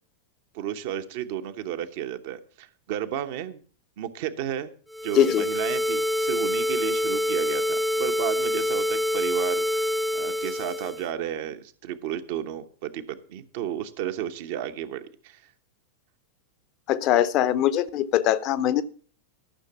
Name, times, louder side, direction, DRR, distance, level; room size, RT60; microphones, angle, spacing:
voice 1, 0.5-3.6 4.0-4.7 5.0-15.4, right 10 dB, 50° right, 9 dB, 0.9 m, -33 dB
sound 1, 4.9-11.1, left 1 dB, ahead, 0.5 m, -26 dB
voice 2, 16.9-18.8, left 12 dB, 40° left, 15 dB, 0.7 m, -22 dB
13.0 x 6.6 x 5.7 m, 0.43 s
figure-of-eight pair, 90°, 0 cm